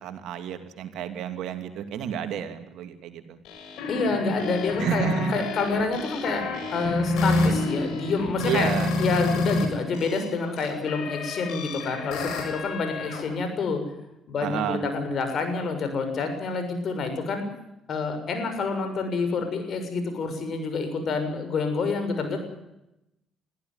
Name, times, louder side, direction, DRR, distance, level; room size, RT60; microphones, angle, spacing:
voice 1, 0.0-3.4 4.8-5.4 8.4-8.9 14.4-14.8, right 8 dB, 70° right, 8 dB, 2.6 m, -30 dB
sound 1, 3.4-9.6 9.9-13.2, left 2 dB, 75° left, 7.4 m, -28 dB
voice 2, 3.9-6.4 6.7-8.7 9.0-13.8 14.3-17.4 17.9-22.4, left 4 dB, 55° left, 7 dB, 6.7 m, -28 dB
22.5 x 15.0 x 9.6 m, 0.90 s
hypercardioid pair, 55°, 0 cm